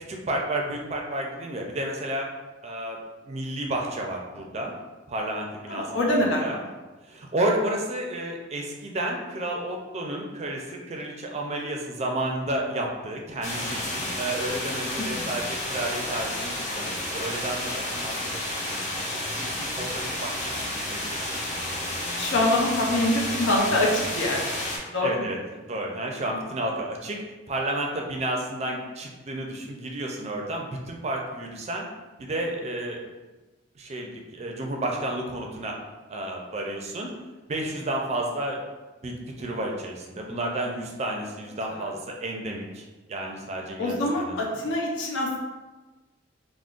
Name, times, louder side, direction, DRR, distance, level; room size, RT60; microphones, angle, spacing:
voice 1, 0.1-2.3 2.6-3.0 3.3-4.7 5.1-6.6 7.0-21.3 25.0-25.4 25.7-27.2 27.5-31.8 32.2-33.0 33.8-35.7 36.1-37.1 37.5-38.6 39.0-42.8 43.1-44.4, right 1 dB, 35° right, 1 dB, 0.4 m, -31 dB
voice 2, 5.7-6.6 15.0-15.3 22.2-24.6 24.9-25.3 41.7-41.9 43.8-45.4, left 1 dB, 80° left, -1 dB, 0.6 m, -25 dB
sound 1, 13.4-24.8, left 1 dB, 40° left, 0.7 m, -31 dB
3.6 x 2.0 x 2.4 m, 1.2 s
head